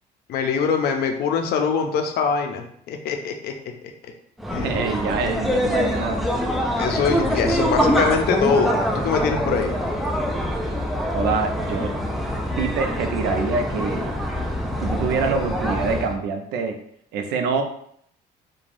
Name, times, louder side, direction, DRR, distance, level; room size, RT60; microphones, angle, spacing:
voice 1, 0.3-3.5 4.5-4.7 6.8-9.7, left 6 dB, 70° left, 5 dB, 0.5 m, -23 dB
sound 1, 4.4-16.2, equal, ahead, 0.4 m, -24 dB
voice 2, 4.6-6.3 11.1-11.9 12.6-14.1 14.8-16.8 17.1-17.6, right 5 dB, 80° right, 6 dB, 0.5 m, -25 dB
3.2 x 2.2 x 2.5 m, 0.68 s
cardioid pair, 110°, 17 cm